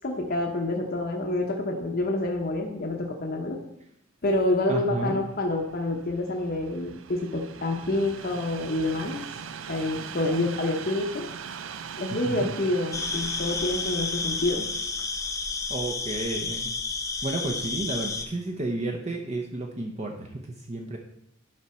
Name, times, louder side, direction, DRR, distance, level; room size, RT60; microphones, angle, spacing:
voice 1, 0.0-3.6 4.2-9.2 9.7-11.3 12.0-14.7, left 2 dB, 45° left, 1 dB, 0.9 m, -27 dB
voice 2, 4.7-5.2 12.3-12.5 15.7-16.7 17.2-21.0, right 2 dB, 30° right, 0 dB, 0.7 m, -31 dB
Train, 4.8-17.9 18.6-18.7, right 7 dB, 70° right, 0.5 m, -42 dB
sound 1, 12.9-18.3, left 4 dB, 15° left, 0.5 m, -31 dB
11.0 x 4.7 x 4.3 m, 0.76 s
head